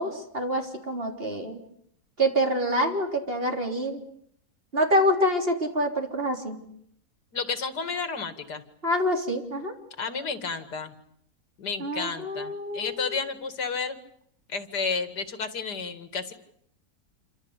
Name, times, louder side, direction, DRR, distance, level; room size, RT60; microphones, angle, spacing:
voice 1, 0.0-1.6 2.2-4.0 4.7-6.6 8.8-9.7 11.8-13.2, equal, 35° right, 3 dB, 3.9 m, -26 dB
voice 2, 7.3-8.6 10.0-10.9 11.6-14.0 14.5-16.3, left 5 dB, 90° left, 10 dB, 2.7 m, -31 dB
28.0 x 25.5 x 8.3 m, 0.69 s
omnidirectional pair, 1.7 m